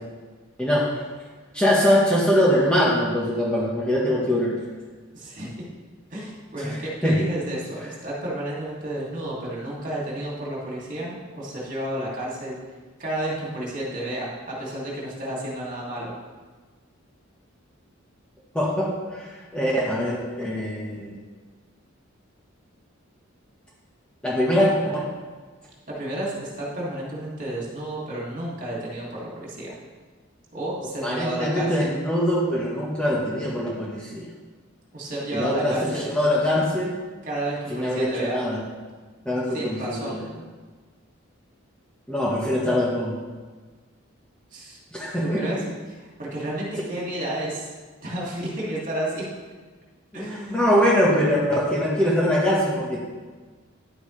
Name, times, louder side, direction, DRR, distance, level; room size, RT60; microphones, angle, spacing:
voice 1, 1.5-4.6 6.6-6.7 7.0-7.2 18.5-21.1 24.2-25.0 31.0-34.2 35.3-37.0 37.7-38.6 39.2-40.2 42.1-43.1 44.9-45.4 50.1-50.2 50.5-53.0, equal, 5° left, -6 dB, 1.3 m, -23 dB
voice 2, 5.1-5.7 6.1-12.6 13.0-16.1 25.9-29.7 30.5-31.9 34.9-36.1 37.2-38.4 39.5-40.2 44.5-44.8 45.2-47.7 48.0-49.3 50.1-50.7, right 1 dB, 40° right, -5 dB, 2.6 m, -31 dB
10.5 x 9.2 x 3.3 m, 1.4 s
head